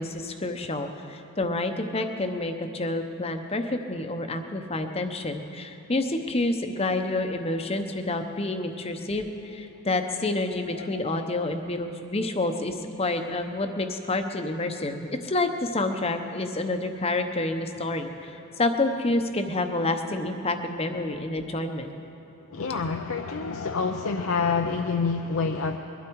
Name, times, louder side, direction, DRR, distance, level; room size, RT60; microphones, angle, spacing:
voice 1, 0.0-21.9, left 2 dB, 25° left, 6 dB, 0.8 m, -28 dB
voice 2, 22.5-25.8, left 4 dB, 65° left, 4 dB, 0.6 m, -27 dB
22.0 x 12.0 x 4.7 m, 2.8 s
head